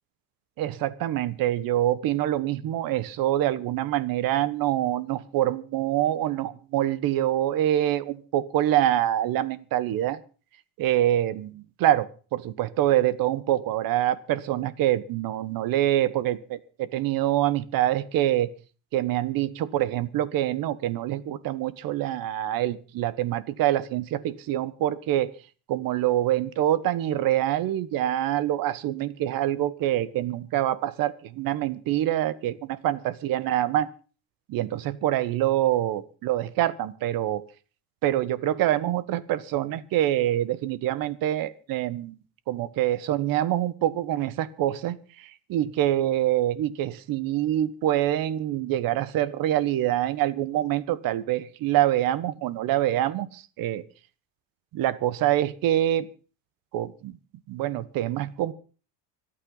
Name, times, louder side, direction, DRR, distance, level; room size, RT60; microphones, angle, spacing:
voice 1, 0.6-10.2 10.8-18.5 18.9-25.3 25.7-33.9 34.5-37.4 38.0-42.2 42.5-53.8 54.7-56.1 56.7-57.2 57.5-58.5, right 13 dB, 55° right, 16 dB, 1.2 m, -25 dB
25.5 x 9.1 x 4.0 m, 0.38 s
supercardioid pair, 115°, 40 cm